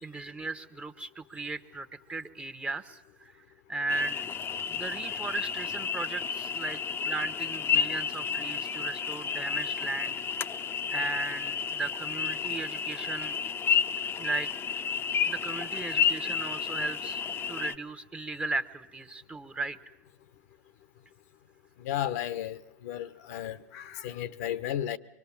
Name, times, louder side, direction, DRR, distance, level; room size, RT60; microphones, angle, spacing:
voice 1, 0.0-4.2 4.7-6.8 7.0-10.2 10.9-13.4 14.2-14.5 15.2-17.2 17.5-19.8, right 3 dB, 15° right, 1.2 m, -36 dB
sound 1, 3.9-17.7, left 7 dB, 25° left, 0.8 m, -31 dB
voice 2, 21.8-25.0, left 11 dB, 60° left, 1.0 m, -34 dB
24.5 x 23.5 x 7.3 m
hypercardioid pair, 105°, 9 cm